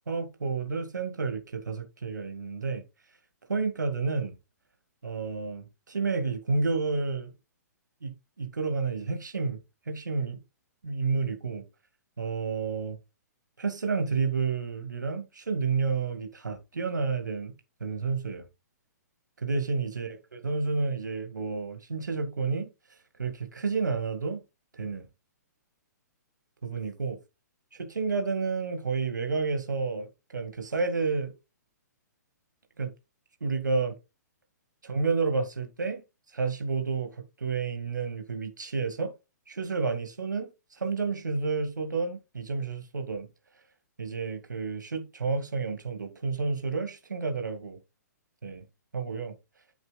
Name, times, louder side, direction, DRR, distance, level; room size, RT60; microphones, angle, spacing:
voice 1, 0.1-2.8 3.5-4.3 5.0-7.3 8.0-9.6 9.9-10.4 10.8-11.6 12.2-13.0 13.6-17.5 17.8-18.4 19.4-22.7 23.2-24.4 24.7-25.1 26.6-27.2 27.7-31.3 32.8-32.9 33.4-34.0 34.8-36.0 36.3-39.1 39.5-43.3 44.0-47.8 48.4-48.6 48.9-49.4, right 4 dB, 85° right, 2.1 m, -30 dB
9.1 x 7.4 x 2.3 m
hypercardioid pair, 130°, 10 cm